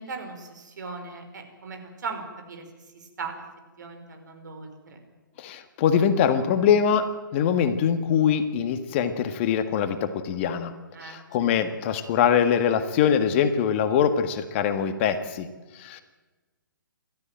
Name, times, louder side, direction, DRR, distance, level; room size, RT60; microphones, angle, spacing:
voice 1, 0.0-2.6 2.9-3.3 3.8-5.0 10.9-11.2 11.7-11.8, right 4 dB, 60° right, 5 dB, 4.9 m, -38 dB
voice 2, 5.4-10.7 11.0-15.5 15.7-16.0, left 8 dB, 35° left, 9 dB, 1.7 m, -23 dB
28.5 x 13.5 x 9.0 m, 1.2 s
figure-of-eight pair, 130°, 11 cm